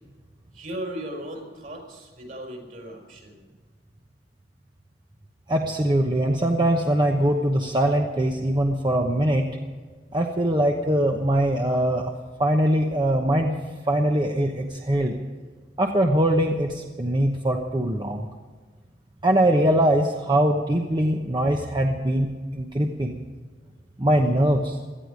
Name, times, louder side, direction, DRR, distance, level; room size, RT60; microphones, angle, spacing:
voice 1, 0.5-3.4, right 1 dB, 50° right, 2 dB, 5.1 m, -37 dB
voice 2, 5.5-9.6 10.1-12.1 12.4-13.5 13.8-15.2 15.8-18.3 19.2-23.2 24.0-24.8, right 1 dB, 25° right, 2 dB, 1.0 m, -22 dB
18.0 x 13.5 x 5.1 m, 1.5 s
head